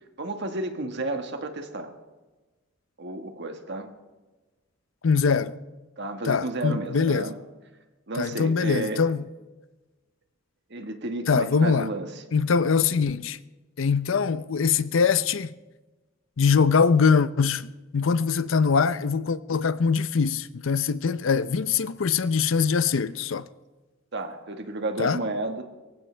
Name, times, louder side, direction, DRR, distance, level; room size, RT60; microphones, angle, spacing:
voice 1, 0.2-1.9 3.0-3.9 6.0-7.4 8.1-9.1 10.7-12.1 24.1-25.6, right 2 dB, 60° right, 1.5 m, -32 dB
voice 2, 5.0-5.5 6.2-7.3 8.2-9.3 11.3-11.9 12.3-13.4 13.8-15.5 16.4-23.5 25.0-25.2, left 5 dB, 70° left, 0.5 m, -23 dB
23.0 x 15.0 x 3.4 m
head